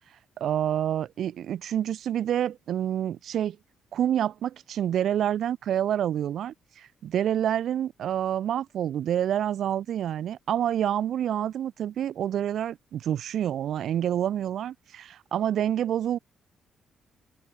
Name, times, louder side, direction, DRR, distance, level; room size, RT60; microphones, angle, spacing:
voice 1, 0.4-3.6 3.9-16.2, right 10 dB, 70° right, 6.6 m, -28 dB
open air
cardioid pair, 105°, 0 cm